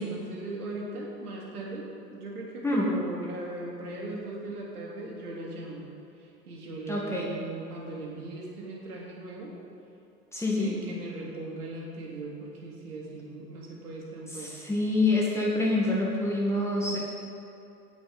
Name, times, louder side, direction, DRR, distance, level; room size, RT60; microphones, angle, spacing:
voice 1, 0.0-5.9 6.2-9.5 10.6-14.5, right 2 dB, 65° right, -2 dB, 3.0 m, -39 dB
voice 2, 6.9-7.3 10.3-10.8 14.3-17.0, left 2 dB, 5° left, -4 dB, 1.8 m, -26 dB
18.0 x 6.2 x 5.4 m, 2.9 s
figure-of-eight pair, 95°, 48 cm